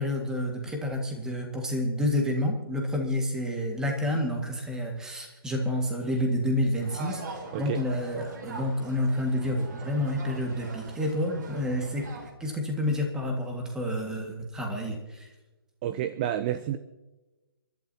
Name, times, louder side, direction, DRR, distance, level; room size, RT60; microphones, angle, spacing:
voice 1, 0.0-7.2 7.6-12.0 12.4-15.3, left 1 dB, 5° right, 2 dB, 1.9 m, -29 dB
sound 1, 6.8-12.3, right 3 dB, 50° right, 2.9 m, -42 dB
voice 2, 15.8-16.8, right 11 dB, 20° right, 12 dB, 0.5 m, -29 dB
29.5 x 12.0 x 2.9 m, 1.1 s
hypercardioid pair, 155°, 13 cm